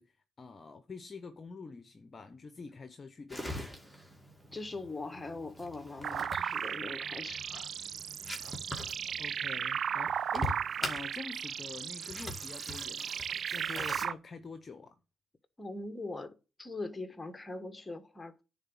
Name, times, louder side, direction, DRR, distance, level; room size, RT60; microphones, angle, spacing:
voice 1, 0.0-3.8 9.2-15.0, left 4 dB, 35° left, 0.8 m, -46 dB
sound 1, 3.3-14.1, left 1 dB, 5° right, 2.2 m, -43 dB
voice 2, 4.4-7.7 15.6-18.4, left 2 dB, 15° left, 1.4 m, -41 dB
sound 2, 6.0-14.1, right 8 dB, 60° right, 0.4 m, -36 dB
9.8 x 4.0 x 7.2 m
cardioid pair, 90°, 0 cm